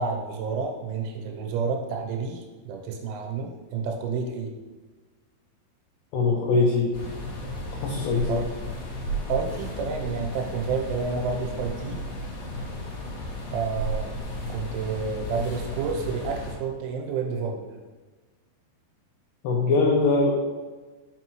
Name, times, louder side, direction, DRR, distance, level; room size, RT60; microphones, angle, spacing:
voice 1, 0.0-4.5 8.3-8.5 9.3-12.0 13.5-14.1 14.5-17.7, right 5 dB, 90° right, 3 dB, 3.3 m, -30 dB
voice 2, 6.1-6.9 7.8-8.4 19.4-20.3, left 3 dB, 85° left, -2 dB, 2.3 m, -22 dB
sound 1, 6.9-16.5, equal, 65° left, 2.3 m, -34 dB
5.6 x 5.6 x 3.1 m, 1.3 s
omnidirectional pair, 5.5 m